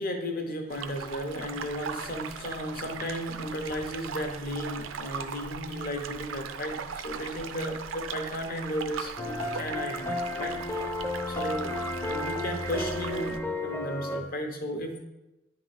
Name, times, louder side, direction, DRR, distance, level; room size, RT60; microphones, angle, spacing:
voice 1, 0.0-10.6 11.3-15.0, equal, 50° left, 4 dB, 0.9 m, -34 dB
sound 1, 0.7-13.4, right 6 dB, 90° right, 0.5 m, -39 dB
sound 2, 9.2-14.2, left 2 dB, 15° left, 0.5 m, -33 dB
10.0 x 3.8 x 3.3 m, 0.96 s
head